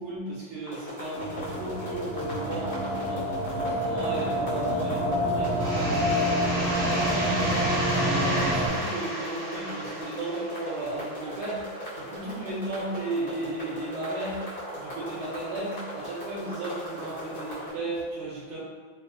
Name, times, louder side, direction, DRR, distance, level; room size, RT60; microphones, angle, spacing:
voice 1, 0.0-18.6, right 2 dB, 90° right, -7 dB, 1.6 m, -35 dB
sound 1, 0.6-17.7, equal, 50° left, 2.0 m, -38 dB
sound 2, 1.1-8.7, equal, 65° left, 1.5 m, -28 dB
sound 3, 5.6-11.1, right 1 dB, 50° right, 0.8 m, -32 dB
4.2 x 2.3 x 2.5 m, 1.5 s
omnidirectional pair, 2.3 m